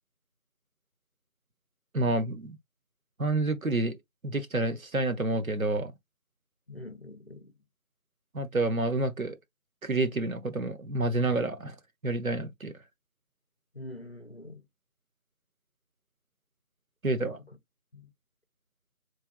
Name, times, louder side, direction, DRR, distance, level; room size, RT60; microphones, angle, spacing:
voice 1, 1.9-2.6 3.2-4.0 4.2-5.9 8.3-9.4 9.8-11.7 12.0-12.7 17.0-17.4, right 2 dB, 70° right, 1.2 m, -28 dB
voice 2, 6.7-7.5 13.7-14.6 17.1-17.4 17.9-18.1, left 1 dB, 45° left, 0.7 m, -45 dB
4.2 x 3.3 x 2.3 m
figure-of-eight pair, 175°, 42 cm